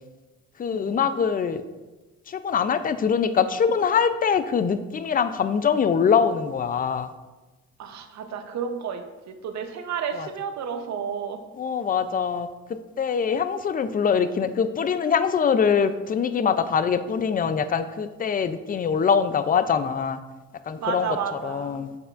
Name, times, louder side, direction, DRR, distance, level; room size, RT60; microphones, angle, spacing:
voice 1, 0.6-1.6 2.3-7.1 10.1-10.3 11.6-12.5 13.0-20.2 20.7-21.2 21.4-22.0, left 6 dB, 30° left, 11 dB, 0.4 m, -23 dB
voice 2, 7.8-11.4 20.8-21.8, right 7 dB, 65° right, 7 dB, 0.7 m, -31 dB
6.8 x 6.6 x 2.5 m, 1.2 s
cardioid pair, 90°, 30 cm